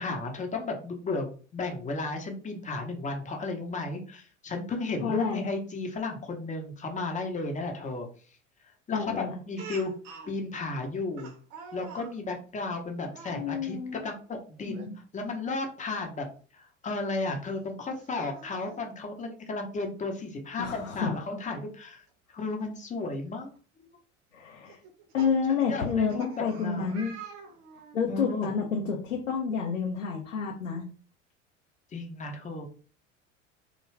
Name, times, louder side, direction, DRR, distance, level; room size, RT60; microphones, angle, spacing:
voice 1, 0.0-8.1 8.9-9.9 10.3-11.3 11.7-14.9 15.1-16.3 16.5-22.0 22.3-23.5 23.8-23.9 25.7-27.0 28.1-28.5 31.9-32.7, left 3 dB, 20° left, 3 dB, 0.7 m, -34 dB
voice 2, 5.0-5.5 8.9-9.4 13.3-14.0 14.6-15.0 20.6-21.2 24.3-24.8 25.1-27.2 27.9-30.8, left 6 dB, 90° left, 1 dB, 0.6 m, -29 dB
Speech, 9.6-10.3 11.2-12.1 13.1-13.4 14.6-14.9 15.3-15.4 17.1-17.2 18.0-18.9 20.2-20.3 20.6-20.7 22.6-22.7 23.3-23.6 24.7-28.0, right 6 dB, 60° right, 0.7 m, -46 dB
2.3 x 2.2 x 3.2 m, 0.40 s
figure-of-eight pair, 75°, 38 cm